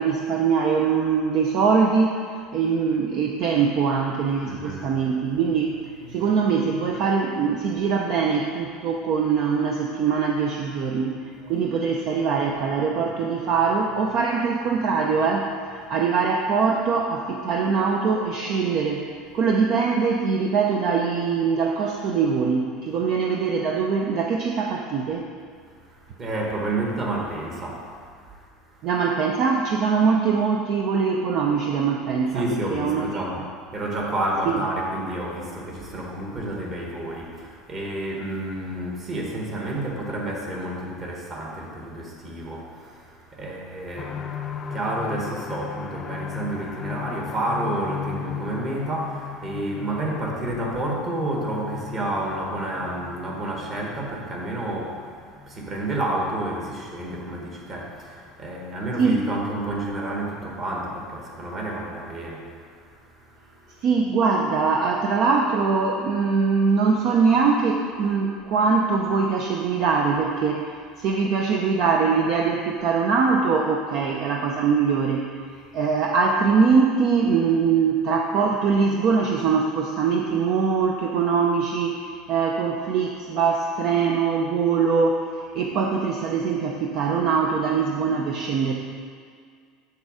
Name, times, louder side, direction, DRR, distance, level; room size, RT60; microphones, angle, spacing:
voice 1, 0.0-5.7 6.1-19.1 19.3-25.3 28.8-33.0 59.0-59.2 63.8-75.3 75.7-85.3 85.5-88.7, right 5 dB, 45° right, 1 dB, 0.6 m, -22 dB
voice 2, 4.4-5.0 5.3-6.3 6.9-7.0 8.9-9.0 10.7-11.0 11.3-11.7 12.1-12.2 12.5-12.7 13.5-13.6 25.7-29.0 32.3-64.0, right 1 dB, 25° right, -1 dB, 1.4 m, -30 dB
sound 1, 44.0-57.5 57.9-58.0 58.4-58.5, left 8 dB, 25° left, 0.4 m, -37 dB
7.1 x 6.6 x 4.9 m, 2.1 s
cardioid pair, 170°, 0 cm